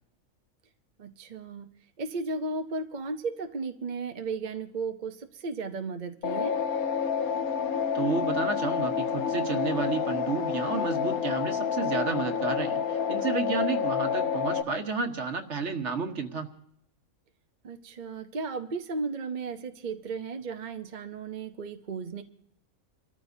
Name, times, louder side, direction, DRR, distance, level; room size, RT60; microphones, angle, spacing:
voice 1, 1.0-1.7 2.0-6.6 17.6-22.2, right 4 dB, 40° right, 0.7 m, -35 dB
sound 1, 6.2-14.6, left 7 dB, 90° left, 1.3 m, -29 dB
voice 2, 7.9-16.5, right 4 dB, 55° right, 1.6 m, -31 dB
30.0 x 13.5 x 2.7 m
omnidirectional pair, 1.5 m